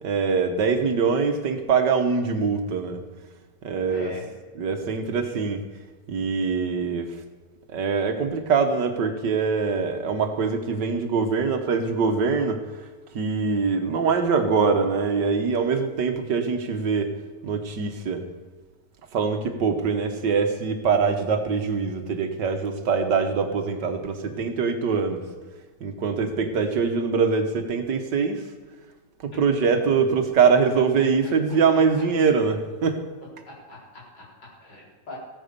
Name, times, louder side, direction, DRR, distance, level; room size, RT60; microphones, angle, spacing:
voice 1, 0.0-3.0 3.6-4.1 4.6-5.6 6.1-7.1 7.7-12.6 13.1-17.1 17.4-18.2 19.1-25.2 25.8-28.4 29.2-33.0, right 5 dB, 80° right, 7 dB, 1.9 m, -23 dB
voice 2, 3.9-4.3 32.0-32.1 33.5-35.2, left 1 dB, 85° left, -5 dB, 5.2 m, -41 dB
15.5 x 9.2 x 6.8 m, 1.3 s
omnidirectional pair, 1.9 m